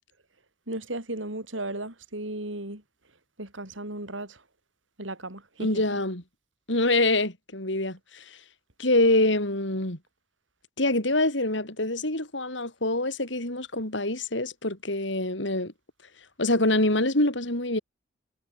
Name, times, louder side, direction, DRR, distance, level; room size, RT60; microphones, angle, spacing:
voice 1, 0.7-2.8 3.4-4.4 5.0-5.7, right 1 dB, 85° right, 7.6 m, -35 dB
voice 2, 5.6-6.2 6.7-8.4 8.8-10.0 10.8-15.7 16.4-17.8, left 2 dB, 70° left, 7.2 m, -25 dB
head